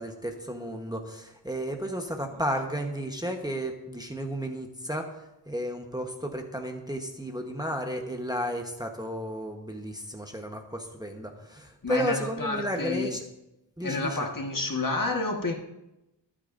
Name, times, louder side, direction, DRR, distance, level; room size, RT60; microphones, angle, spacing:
voice 1, 0.0-5.1 5.5-13.2 13.8-14.3, equal, 10° right, 3 dB, 1.1 m, -33 dB
voice 2, 11.8-13.1 13.8-15.5, left 3 dB, 45° left, 2 dB, 1.6 m, -29 dB
22.5 x 8.8 x 2.6 m, 0.92 s
wide cardioid pair, 90°, 44 cm